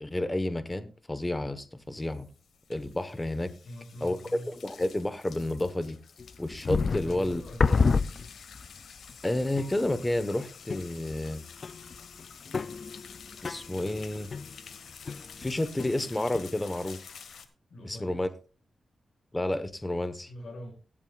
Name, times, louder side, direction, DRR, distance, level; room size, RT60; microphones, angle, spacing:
voice 1, 0.0-2.3 2.7-3.5 4.0-4.2 4.5-6.0 6.4-7.4 9.2-11.4 13.4-14.3 15.4-17.0 17.8-18.3 19.3-20.3, left 1 dB, 15° left, 11 dB, 1.1 m, -30 dB
sound 1, 1.8-17.5, left 6 dB, 85° left, 1.3 m, -50 dB
voice 2, 3.6-4.5 7.0-7.9 17.7-18.3 20.2-20.7, equal, 60° left, 2 dB, 6.5 m, -44 dB
sound 2, 6.2-8.7 9.1-9.2 9.6-10.1 10.7-11.3 11.6-15.5 15.8-16.4, left 4 dB, 45° left, 0.4 m, -30 dB
16.5 x 11.0 x 2.4 m, 0.35 s
wide cardioid pair, 120°, 0 cm